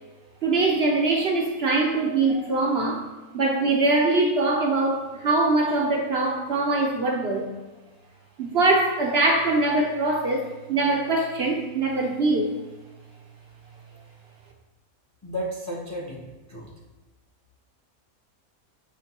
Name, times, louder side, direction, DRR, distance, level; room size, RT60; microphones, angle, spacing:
voice 1, 0.4-3.1 3.3-7.5 8.4-12.5, right 2 dB, 55° right, 0 dB, 0.8 m, -23 dB
voice 2, 15.2-16.7, equal, 15° left, -2 dB, 0.6 m, -33 dB
7.0 x 5.8 x 2.9 m, 1.2 s
omnidirectional pair, 1.5 m